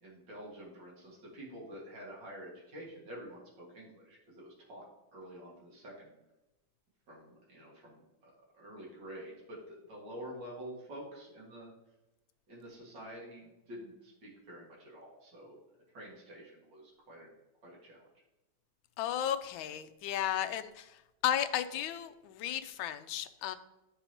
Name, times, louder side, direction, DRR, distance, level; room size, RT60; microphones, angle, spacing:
voice 1, 0.0-4.9 5.1-6.2 7.1-11.7 12.5-15.6 15.9-17.3 17.6-18.1, equal, 55° right, -4 dB, 2.7 m, -48 dB
voice 2, 19.0-20.9 21.2-23.6, left 10 dB, 75° left, 10 dB, 1.3 m, -34 dB
12.0 x 5.5 x 2.9 m, 1.0 s
omnidirectional pair, 2.3 m